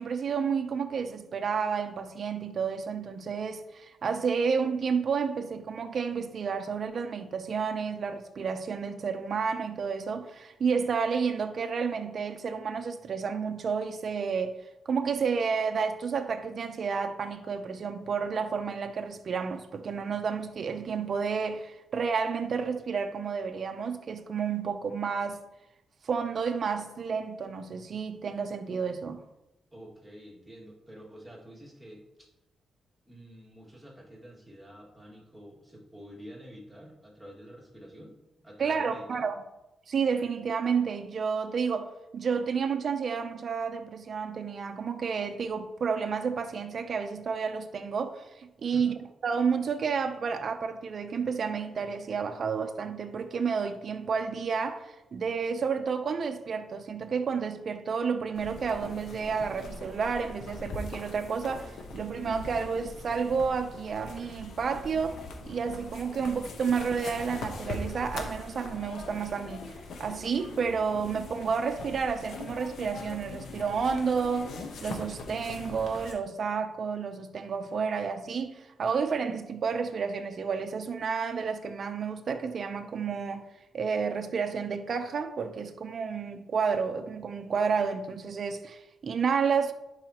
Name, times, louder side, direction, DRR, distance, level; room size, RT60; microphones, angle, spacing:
voice 1, 0.0-14.6 14.9-25.4 26.0-29.2 38.6-39.4 39.9-48.9 49.2-69.7 70.0-74.5 74.8-83.5 83.7-89.7, right 6 dB, 55° right, 0.6 m, -30 dB
voice 2, 29.7-32.3 33.1-39.3 48.6-48.9, equal, 5° right, 2.1 m, -48 dB
sound 1, 58.3-76.1, left 3 dB, 80° left, 1.0 m, -42 dB
11.5 x 4.8 x 2.9 m
cardioid pair, 105°, 0 cm